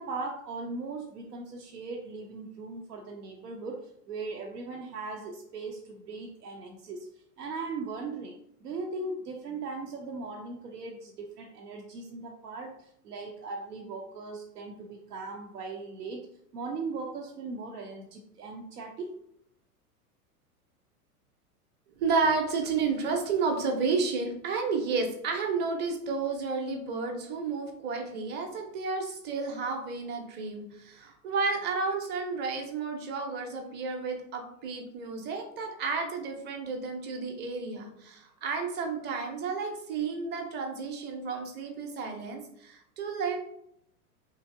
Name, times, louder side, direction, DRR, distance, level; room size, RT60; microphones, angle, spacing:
voice 1, 0.0-7.1 7.4-16.3 16.5-19.1, right 3 dB, 85° right, 1 dB, 0.6 m, -39 dB
voice 2, 22.0-43.4, right 4 dB, 25° right, 3 dB, 0.6 m, -31 dB
3.2 x 2.7 x 2.5 m, 0.72 s
hypercardioid pair, 100°, 46 cm